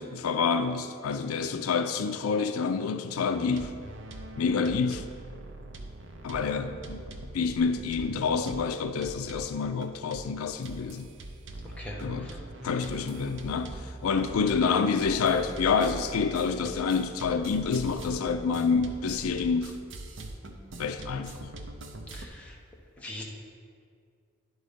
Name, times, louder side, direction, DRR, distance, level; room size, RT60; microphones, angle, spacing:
voice 1, 0.0-3.7 4.4-5.1 6.2-7.1 7.3-11.1 12.0-12.3 12.6-19.8 20.8-21.5, left 5 dB, 85° left, 9 dB, 0.4 m, -28 dB
sound 1, 3.2-9.8 10.1-10.4 10.6-22.3, right 2 dB, 60° right, 0.6 m, -42 dB
voice 2, 11.8-12.4 22.1-22.5 23.0-23.2, left 1 dB, 5° left, -3 dB, 0.8 m, -41 dB
10.5 x 4.0 x 5.1 m, 2.2 s
head